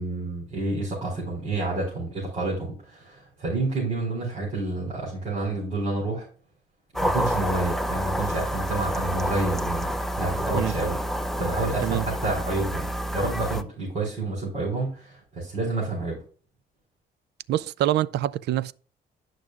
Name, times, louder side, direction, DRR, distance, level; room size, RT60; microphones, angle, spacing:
voice 1, 0.0-6.3 7.0-9.9 10.2-11.0 11.4-16.2, right 2 dB, 35° right, 4.4 m, -29 dB
sound 1, 6.9-13.6, equal, ahead, 0.5 m, -28 dB
voice 2, 17.5-18.7, right 12 dB, 75° right, 0.4 m, -25 dB
11.0 x 6.3 x 2.4 m
cardioid pair, 140°, 18 cm